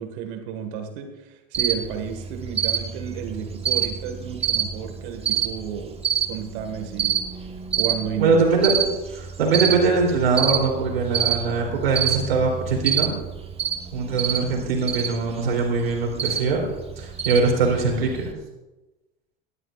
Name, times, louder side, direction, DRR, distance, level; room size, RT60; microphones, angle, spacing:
voice 1, 0.0-6.0 6.3-7.2 7.7-8.4, right 8 dB, 65° right, 5 dB, 2.0 m, -32 dB
Cricket, 1.5-18.3, right 8 dB, 20° right, 1.5 m, -28 dB
voice 2, 8.2-13.1 13.9-16.6 17.0-18.3, right 4 dB, 80° right, 0 dB, 3.6 m, -22 dB
18.5 x 12.5 x 2.6 m, 1.1 s
hypercardioid pair, 85°, 29 cm